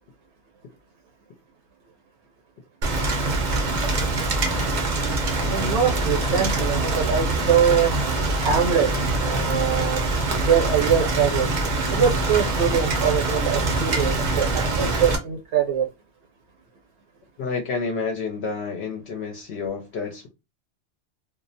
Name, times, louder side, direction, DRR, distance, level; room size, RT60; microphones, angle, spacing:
Rain, 2.8-15.2, right 2 dB, 50° right, 0.6 m, -24 dB
voice 1, 5.4-7.9 8.4-8.9 9.2-10.0 10.5-11.5 11.9-15.9, right 7 dB, 70° right, 1.1 m, -23 dB
voice 2, 17.4-20.3, left 4 dB, 70° left, 0.8 m, -29 dB
2.4 x 2.0 x 2.6 m
omnidirectional pair, 1.2 m